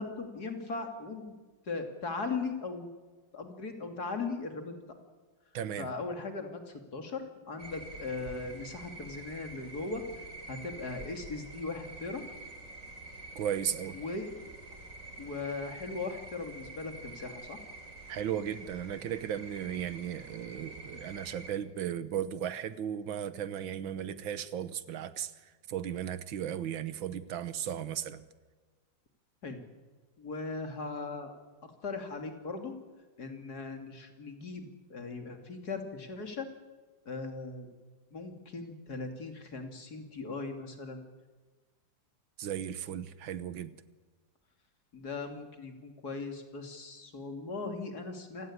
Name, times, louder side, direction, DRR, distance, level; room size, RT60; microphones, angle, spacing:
voice 1, 0.0-1.3 1.7-2.9 3.3-4.8 5.8-10.0 10.5-12.2 13.9-14.3 15.2-17.6 29.4-29.6 30.2-31.3 31.6-32.7 33.2-36.5 37.0-37.7 38.1-41.0 44.9-48.5, left 3 dB, 55° left, 3.2 m, -38 dB
voice 2, 5.5-5.9 13.4-14.0 18.1-28.3 42.4-43.7, right 9 dB, 85° right, 1.9 m, -36 dB
sound 1, 7.6-21.5, right 2 dB, 40° right, 3.9 m, -47 dB
27.5 x 17.5 x 9.8 m
omnidirectional pair, 2.1 m